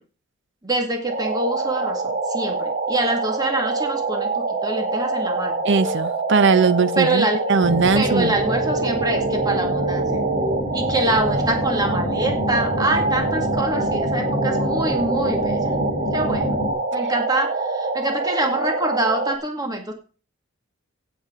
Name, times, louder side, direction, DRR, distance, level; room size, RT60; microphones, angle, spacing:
voice 1, 0.6-2.0 2.3-5.6 7.0-7.4 8.0-10.2 10.7-15.7 16.1-16.6 16.9-19.9, right 2 dB, 20° right, 1.9 m, -25 dB
sound 1, 1.1-19.4, right 3 dB, 40° right, 1.4 m, -25 dB
voice 2, 5.6-8.3, right 5 dB, 60° right, 0.8 m, -19 dB
sound 2, 7.6-16.7, left 1 dB, 25° left, 4.7 m, -27 dB
16.5 x 7.3 x 3.7 m
head